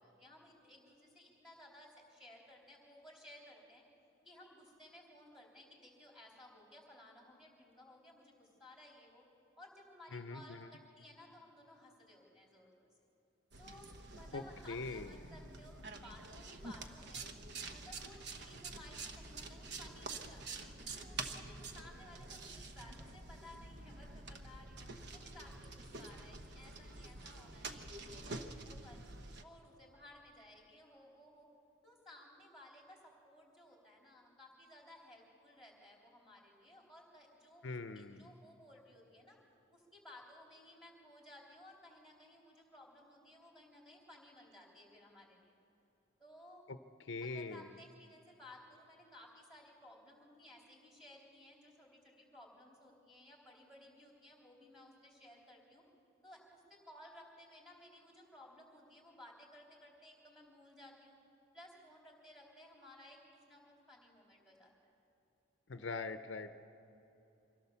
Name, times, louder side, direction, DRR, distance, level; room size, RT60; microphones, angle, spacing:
voice 1, 0.0-3.8 4.2-9.2 9.6-12.9 13.6-17.3 17.7-29.0 29.4-31.5 31.8-39.4 39.7-45.5 46.2-46.6 47.2-55.8 56.2-61.2 61.5-63.2 63.5-64.9, left 1 dB, ahead, -1 dB, 3.6 m, -58 dB
voice 2, 10.1-10.7 14.3-14.4 14.7-15.1 37.6-38.3 46.7-46.8 47.0-47.7 65.7-66.5, left 3 dB, 60° left, 9 dB, 0.6 m, -42 dB
sound 1, 13.5-29.4, right 3 dB, 55° right, 1.0 m, -48 dB
24.5 x 16.5 x 7.0 m, 3.0 s
head